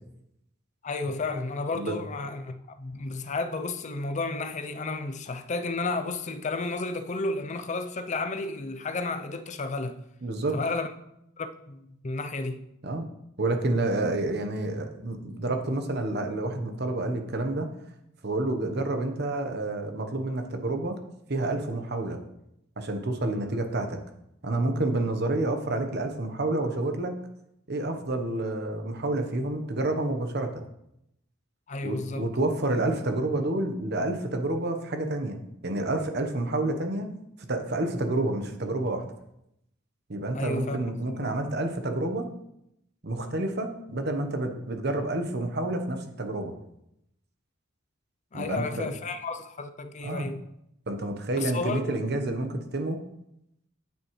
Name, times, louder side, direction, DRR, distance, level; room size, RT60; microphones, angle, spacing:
voice 1, 0.8-10.0 10.5-10.9 11.4-12.6 31.7-32.3 40.3-40.9 41.2-41.3 48.3-50.4 51.4-52.0, left 3 dB, 35° left, 0.5 m, -32 dB
voice 2, 10.2-10.6 12.8-13.1 13.4-17.7 18.2-21.0 21.3-22.2 22.8-24.0 24.4-27.1 27.7-30.6 31.8-35.4 35.6-37.1 37.5-39.0 40.1-42.3 43.0-46.5 48.3-48.9 50.0-50.3 50.9-53.0, right 2 dB, 55° right, 1.0 m, -29 dB
9.1 x 7.5 x 3.2 m
head